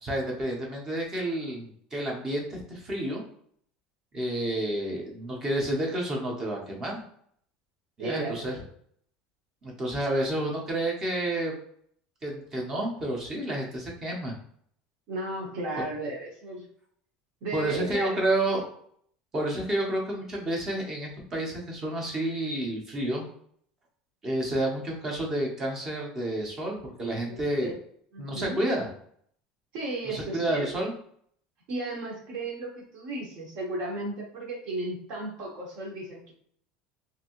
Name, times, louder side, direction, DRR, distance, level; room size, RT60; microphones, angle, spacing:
voice 1, 0.0-3.2 4.1-7.0 8.0-8.6 9.6-11.5 12.2-14.3 17.5-18.6 19.3-23.2 24.2-27.7 28.2-28.9 30.1-30.9, right 1 dB, 20° right, 0 dB, 0.8 m, -30 dB
voice 2, 8.0-8.7 15.1-16.7 17.4-18.2 27.3-27.8 28.1-28.6 29.7-30.7 31.7-36.3, right 2 dB, 50° right, -1 dB, 1.0 m, -34 dB
2.9 x 2.6 x 2.9 m, 0.63 s
cardioid pair, 160°, 2 cm